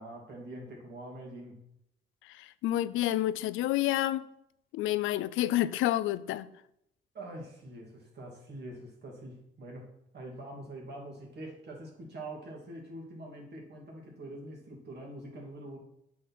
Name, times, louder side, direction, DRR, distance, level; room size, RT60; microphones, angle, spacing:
voice 1, 0.0-1.6 7.1-9.9 10.1-15.8, right 1 dB, 55° right, 2.6 m, -44 dB
voice 2, 2.4-4.3 4.7-6.5, left 14 dB, 90° left, 0.4 m, -29 dB
8.4 x 6.6 x 4.3 m
cardioid pair, 90°, 20 cm